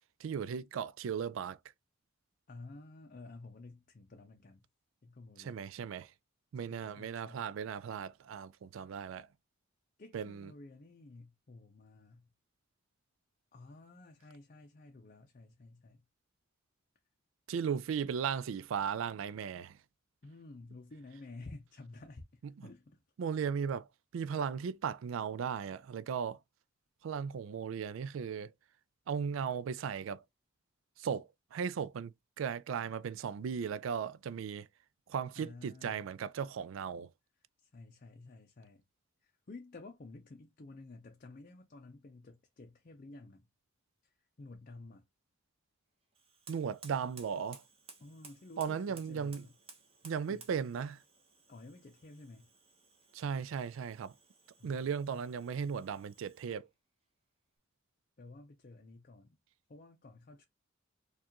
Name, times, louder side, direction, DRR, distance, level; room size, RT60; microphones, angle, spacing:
voice 1, 0.2-1.6 5.4-6.1 6.5-9.3 10.1-10.5 17.5-19.7 23.2-23.9 24.1-26.4 27.0-28.5 29.1-30.2 31.0-34.7 35.1-37.1 46.5-47.6 48.6-49.4 50.0-51.0 53.1-54.1 54.6-56.7, right 7 dB, 70° right, 0.3 m, -36 dB
voice 2, 2.5-4.6 5.0-5.6 6.6-7.5 10.0-12.3 13.5-16.0 20.2-23.0 35.3-36.1 37.6-38.8 39.2-43.5 44.0-45.0 48.0-49.5 50.3-50.5 51.5-52.5 54.6-55.0 58.2-59.4 59.7-60.5, left 2 dB, 40° left, 0.5 m, -52 dB
Fire, 46.1-56.7, right 5 dB, 30° right, 0.9 m, -58 dB
4.6 x 2.4 x 2.8 m
head